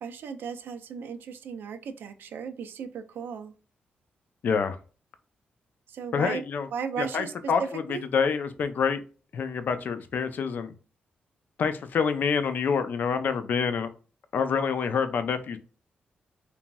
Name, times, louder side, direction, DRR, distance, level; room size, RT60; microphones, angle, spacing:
voice 1, 0.0-3.5 5.9-6.4 6.7-8.0, right 6 dB, 85° right, 8 dB, 0.4 m, -36 dB
voice 2, 4.4-4.8 6.1-6.7 7.0-9.0 9.3-10.7 11.6-13.9 14.3-15.6, left 6 dB, 60° left, 10 dB, 0.4 m, -27 dB
3.0 x 2.6 x 2.2 m, 0.36 s
wide cardioid pair, 130°, 3 cm